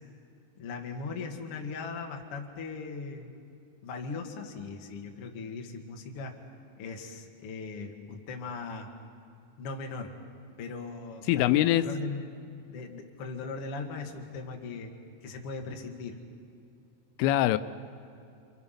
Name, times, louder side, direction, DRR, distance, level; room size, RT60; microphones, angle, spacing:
voice 1, 0.6-3.3 3.8-6.4 6.8-8.9 9.6-10.1 10.6-12.4 12.7-14.9 15.2-16.2, left 4 dB, 60° left, 2 dB, 1.4 m, -39 dB
voice 2, 11.3-11.9 17.2-17.6, left 14 dB, 90° left, 12 dB, 3.3 m, -23 dB
29.0 x 26.0 x 5.8 m, 2.5 s
omnidirectional pair, 5.6 m